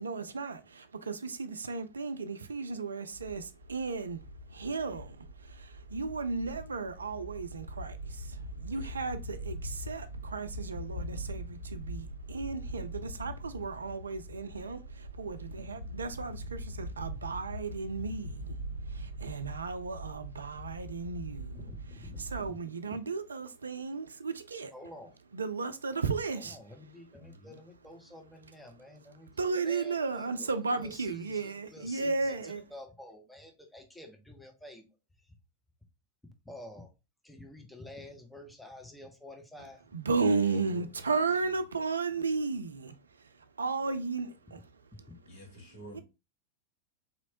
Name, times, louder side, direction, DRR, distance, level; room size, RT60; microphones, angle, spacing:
voice 1, 0.0-24.7 25.3-26.6 29.4-32.6 39.9-44.7 45.9-46.0, right 4 dB, 75° right, 0.4 m, -35 dB
sound 1, 3.1-22.5, equal, 90° left, 1.1 m, -42 dB
voice 2, 15.3-15.6 21.8-22.3 27.2-27.6 40.2-40.4 40.7-41.1 45.2-46.0, equal, 45° left, 1.5 m, -51 dB
voice 3, 21.5-22.2 22.5-22.6 22.8-23.0 24.7-25.2 26.3-30.5 30.7-34.8 36.4-36.9 37.2-39.9 45.1-45.2, left 1 dB, 5° left, 0.8 m, -49 dB
4.2 x 3.0 x 2.8 m
figure-of-eight pair, 90°, 0 cm